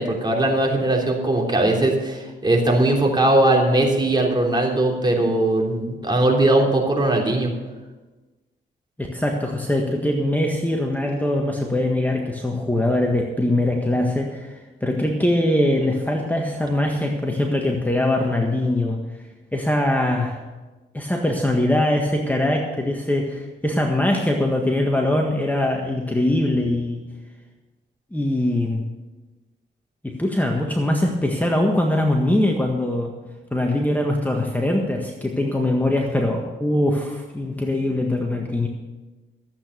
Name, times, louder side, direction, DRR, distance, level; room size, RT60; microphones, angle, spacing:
voice 1, 0.0-7.5, right 1 dB, 25° right, 0 dB, 3.3 m, -19 dB
voice 2, 9.0-19.0 19.5-20.4 20.9-27.0 28.1-28.8 30.0-33.1 33.5-38.7, left 1 dB, 10° left, 1 dB, 1.6 m, -22 dB
14.0 x 8.6 x 6.9 m, 1.2 s
cardioid pair, 80°, 20 cm